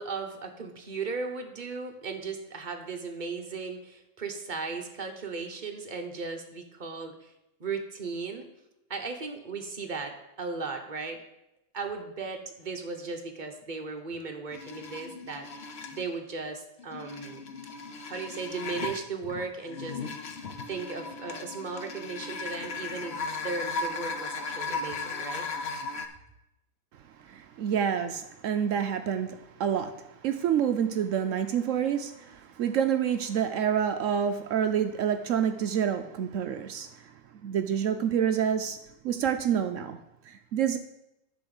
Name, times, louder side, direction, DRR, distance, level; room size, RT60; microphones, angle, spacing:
voice 1, 0.0-7.3 7.6-8.5 8.9-11.2 11.7-17.4 18.0-20.0 20.7-23.2 23.4-25.4, right 4 dB, 35° right, 3 dB, 0.9 m, -36 dB
sound 1, 14.5-16.1 16.8-26.1, left 4 dB, 55° left, 0.7 m, -36 dB
voice 2, 27.2-30.0 30.2-37.1 37.4-38.8 39.0-40.0 40.3-40.8, right 8 dB, 80° right, 8 dB, 0.7 m, -28 dB
10.0 x 4.2 x 7.1 m, 0.86 s
omnidirectional pair, 2.0 m